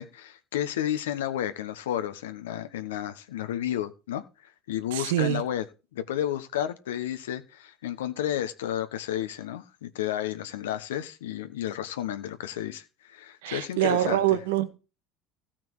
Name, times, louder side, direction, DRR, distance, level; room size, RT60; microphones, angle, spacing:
voice 1, 0.0-5.6 5.9-14.2, left 11 dB, 85° left, 1.1 m, -32 dB
voice 2, 4.9-5.4 13.4-14.8, right 13 dB, 80° right, 1.2 m, -25 dB
15.5 x 5.9 x 4.8 m
hypercardioid pair, 75°, 0 cm